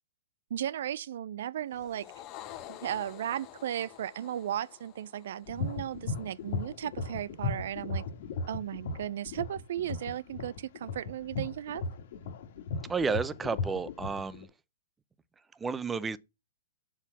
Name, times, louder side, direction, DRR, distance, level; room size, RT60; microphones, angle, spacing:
voice 1, 0.5-2.1 2.7-8.0 8.5-11.8, right 11 dB, 65° right, 0.4 m, -35 dB
sound 1, 1.7-6.3, left 12 dB, 35° left, 1.1 m, -49 dB
sound 2, 5.5-14.4, left 4 dB, 60° left, 1.7 m, -36 dB
voice 2, 12.9-14.5 15.6-16.2, right 5 dB, 10° right, 0.5 m, -31 dB
7.0 x 4.2 x 5.8 m
hypercardioid pair, 130°, 0 cm